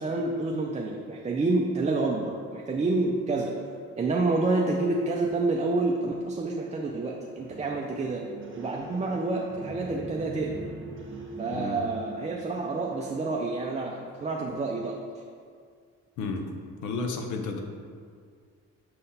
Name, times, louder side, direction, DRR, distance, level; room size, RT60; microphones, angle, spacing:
voice 1, 0.0-3.6 4.0-10.6 11.4-15.0, right 3 dB, 25° right, -1 dB, 0.5 m, -28 dB
sound 1, 7.4-13.3, right 3 dB, 40° right, 1.1 m, -42 dB
voice 2, 11.5-11.8 16.2-16.5 16.8-17.6, left 3 dB, 80° left, 4 dB, 0.8 m, -32 dB
6.5 x 3.9 x 4.1 m, 2.1 s
cardioid pair, 90°, 30 cm